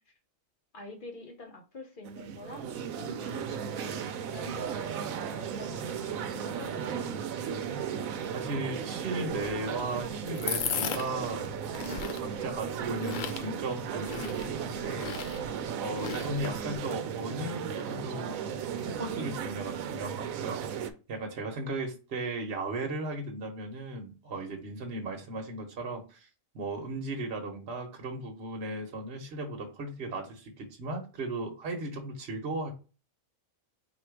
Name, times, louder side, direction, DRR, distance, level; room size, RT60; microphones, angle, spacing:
voice 1, 0.7-2.6 3.0-7.2, left 1 dB, 45° left, 4 dB, 0.9 m, -46 dB
sound 1, 2.0-20.9, right 7 dB, 90° right, 1.0 m, -36 dB
voice 2, 8.3-11.6 12.1-15.1 15.8-18.4 18.8-20.8 21.1-26.3 26.5-32.7, right 2 dB, 55° right, 2 dB, 1.2 m, -36 dB
sound 2, 9.3-16.8, left 7 dB, 80° left, 0.4 m, -38 dB
4.4 x 2.4 x 4.5 m, 0.33 s
omnidirectional pair, 1.4 m